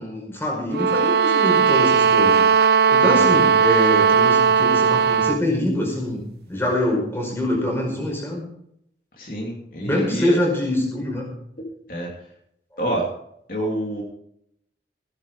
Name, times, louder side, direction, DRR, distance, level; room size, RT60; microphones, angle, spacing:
voice 1, 0.0-2.4 2.9-6.2 6.5-8.4 9.8-11.2, left 1 dB, 15° left, -1 dB, 5.0 m, -24 dB
sound 1, 0.7-5.4, right 6 dB, 60° right, 0.4 m, -17 dB
voice 2, 3.0-3.3 9.2-10.4 11.9-12.1 12.8-13.1 13.5-14.0, right 1 dB, 50° left, -1 dB, 3.0 m, -27 dB
15.5 x 10.5 x 5.0 m, 0.73 s
head